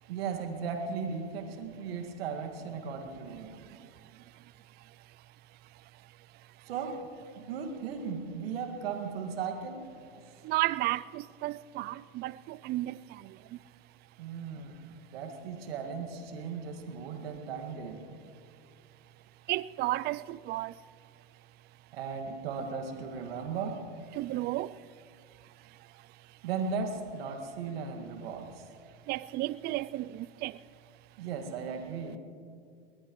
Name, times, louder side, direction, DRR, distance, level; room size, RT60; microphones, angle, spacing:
voice 1, 0.1-3.5 6.7-7.0 7.3-9.8 10.1-10.4 14.2-14.7 15.1-18.0 21.9-23.8 26.4-28.5 31.2-32.2, right 5 dB, 75° right, 2.0 m, -36 dB
voice 2, 10.4-13.0 19.5-20.7 24.2-24.7 29.1-30.5, right 17 dB, 35° right, 0.4 m, -32 dB
21.0 x 20.0 x 3.1 m
hypercardioid pair, 100°, 30 cm